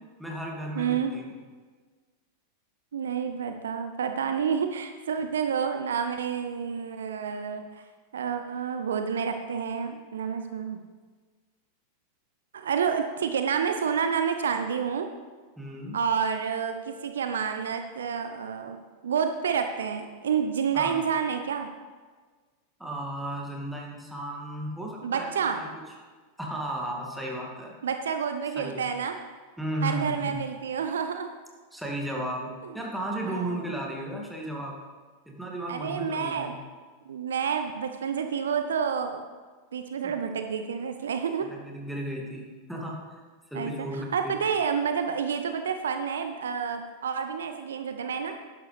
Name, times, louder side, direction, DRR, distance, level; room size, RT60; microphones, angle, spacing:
voice 1, 0.2-1.2 15.6-16.0 20.7-21.0 22.8-25.7 26.4-27.7 28.6-28.9 29.6-30.5 31.7-34.8 35.3-36.5 40.0-40.1 41.4-43.2 43.5-44.3, right 1 dB, ahead, -2 dB, 2.2 m, -34 dB
voice 2, 0.8-1.1 2.9-7.6 8.1-10.8 12.5-15.1 15.9-18.8 19.0-21.7 25.0-25.6 27.8-29.2 29.8-31.3 32.6-32.8 33.2-33.7 35.7-36.5 37.1-39.2 39.7-41.5 43.5-48.3, right 7 dB, 65° right, 7 dB, 0.7 m, -29 dB
11.5 x 11.0 x 3.3 m, 1.4 s
figure-of-eight pair, 90°, 0 cm